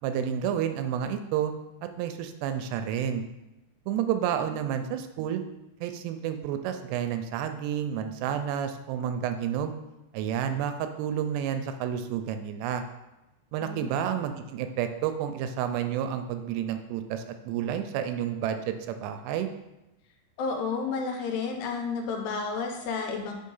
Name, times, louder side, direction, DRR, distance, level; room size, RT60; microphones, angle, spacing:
voice 1, 0.0-1.5 1.8-3.2 3.9-5.4 5.8-9.7 10.1-12.8 13.5-19.5, right 9 dB, 85° right, 8 dB, 2.6 m, -30 dB
voice 2, 20.4-23.3, left 4 dB, 80° left, 3 dB, 2.9 m, -31 dB
5.5 x 4.9 x 5.4 m, 0.97 s
omnidirectional pair, 4.9 m